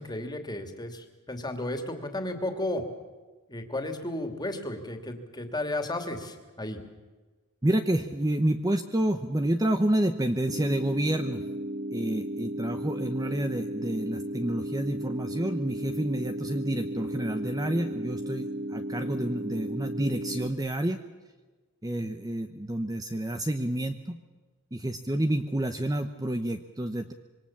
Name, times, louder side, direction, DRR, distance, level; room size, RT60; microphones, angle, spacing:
voice 1, 0.0-2.8 3.5-6.8, left 1 dB, 20° left, 6 dB, 2.6 m, -33 dB
voice 2, 7.6-11.5 11.9-21.0 21.8-24.2 24.7-27.1, right 1 dB, 15° right, 7 dB, 0.9 m, -29 dB
sound 1, 10.5-20.5, right 1 dB, 45° right, 2.0 m, -35 dB
26.0 x 23.5 x 7.3 m, 1.3 s
head